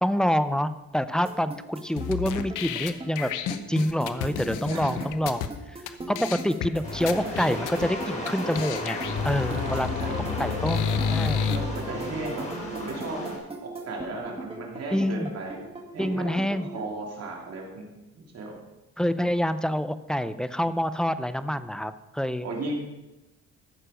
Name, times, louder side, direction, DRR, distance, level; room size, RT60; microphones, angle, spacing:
voice 1, 0.0-3.3 3.7-9.0 9.2-9.9 10.4-11.5 14.9-15.3 16.0-16.7 19.0-22.5, equal, ahead, 13 dB, 0.5 m, -27 dB
sound 1, 1.3-16.8, right 2 dB, 20° right, 2.1 m, -38 dB
sound 2, 2.0-5.5 5.9-6.0 6.1-6.7 7.1-7.9 8.3-8.4 8.5-11.6, left 7 dB, 90° left, 0.8 m, -30 dB
sound 3, 6.8-13.4, left 2 dB, 25° left, 4.0 m, -34 dB
voice 2, 9.5-10.2 11.5-12.4 12.7-13.2 13.9-15.6 15.9-16.2 16.7-17.9 18.1-18.6 22.4-22.7, right 2 dB, 55° right, -1 dB, 2.7 m, -35 dB
14.0 x 6.7 x 5.1 m, 1.0 s
cardioid pair, 90°, 30 cm